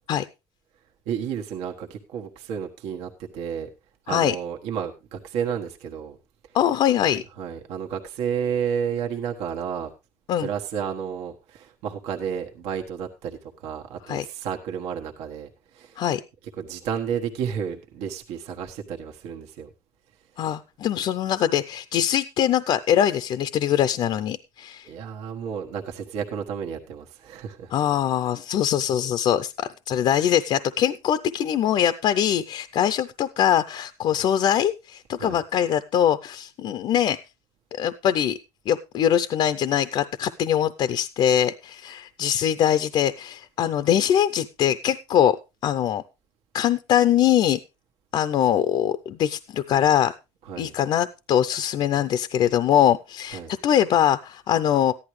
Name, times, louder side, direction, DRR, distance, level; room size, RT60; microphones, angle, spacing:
voice 1, 1.0-3.7 4.1-6.2 6.4-6.6 7.4-9.9 10.4-16.0 16.6-19.7 24.8-27.7 35.2-35.4 50.4-50.7 53.3-53.5, right 8 dB, 80° right, 2 dB, 1.4 m, -31 dB
voice 2, 6.5-7.2 10.3-10.5 14.1-14.2 16.0-16.2 20.4-24.9 27.7-37.2 37.8-38.4 38.7-45.4 45.6-46.0 46.5-47.6 48.1-50.1 50.6-54.9, left 10 dB, 50° left, 12 dB, 0.5 m, -22 dB
14.5 x 11.0 x 3.1 m, 0.27 s
cardioid pair, 155°, 11 cm